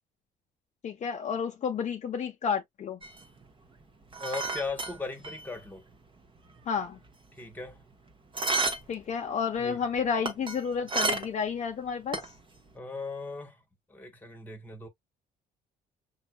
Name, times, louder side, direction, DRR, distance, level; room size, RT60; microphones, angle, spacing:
voice 1, 0.8-3.0 6.7-7.0 8.9-12.2, left 6 dB, 45° left, 0.7 m, -31 dB
sound 1, 3.0-5.7 5.9-6.0 6.4-7.9 8.3-9.0 9.3-11.5 11.9-12.6, right 3 dB, 30° right, 1.1 m, -32 dB
voice 2, 4.2-5.8 7.4-7.8 9.6-9.8 12.7-13.6 13.9-14.9, left 3 dB, 10° left, 1.3 m, -38 dB
5.7 x 2.6 x 2.2 m
cardioid pair, 110°, 17 cm